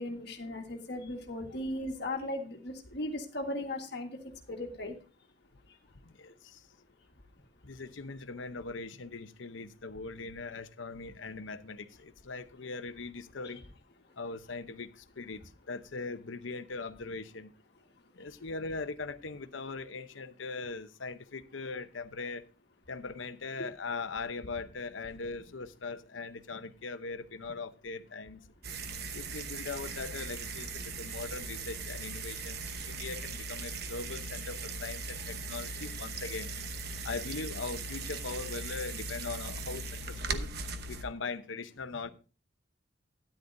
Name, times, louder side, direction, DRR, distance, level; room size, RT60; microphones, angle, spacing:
voice 1, 0.0-4.1 4.5-4.9, left 1 dB, 55° left, 1.7 m, -37 dB
voice 2, 6.0-6.6 7.6-13.6 14.2-15.4 15.7-17.5 18.1-22.4 22.9-28.4 29.1-36.5 37.0-40.5 40.9-42.1, left 4 dB, 85° left, 0.8 m, -40 dB
sound 1, 28.6-41.0, right 3 dB, 55° right, 1.0 m, -39 dB
13.0 x 10.0 x 2.6 m
head